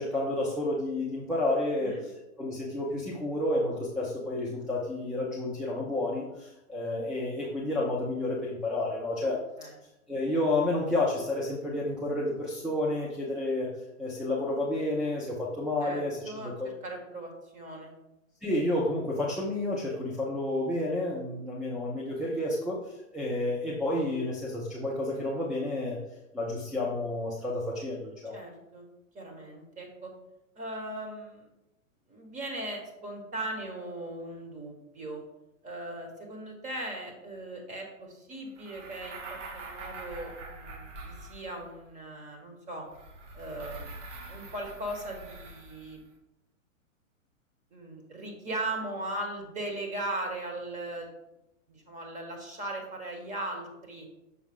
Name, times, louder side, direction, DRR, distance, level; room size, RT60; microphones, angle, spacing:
voice 1, 0.0-2.1 2.4-9.4 10.1-13.7 14.0-16.7 18.4-26.0 26.3-28.4, left 1 dB, ahead, -5 dB, 0.5 m, -30 dB
voice 2, 15.8-16.5 16.8-17.9 28.3-28.9 29.1-30.1 30.6-31.5 32.1-35.2 35.6-42.8 43.3-43.9 44.3-46.0 47.7-51.1 51.7-54.1, right 1 dB, 20° right, 2 dB, 1.4 m, -38 dB
sound 1, 38.6-41.8 42.9-46.0, right 2 dB, 60° right, 1.4 m, -44 dB
6.5 x 4.6 x 3.6 m, 0.90 s
hypercardioid pair, 120°, 41 cm